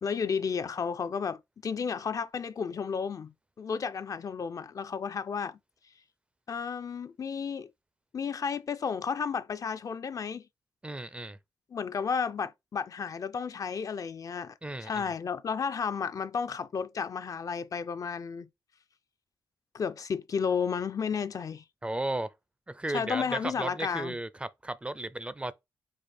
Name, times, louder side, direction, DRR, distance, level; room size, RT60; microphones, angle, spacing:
voice 1, 0.0-3.3 3.6-5.6 6.5-7.7 8.1-10.4 11.7-18.5 19.7-21.6 22.9-24.2, left 6 dB, 45° left, 0.4 m, -32 dB
voice 2, 10.8-11.4 14.6-15.0 21.8-22.3 22.7-25.5, right 2 dB, 15° right, 0.4 m, -35 dB
4.8 x 2.4 x 4.2 m
cardioid pair, 85°, 8 cm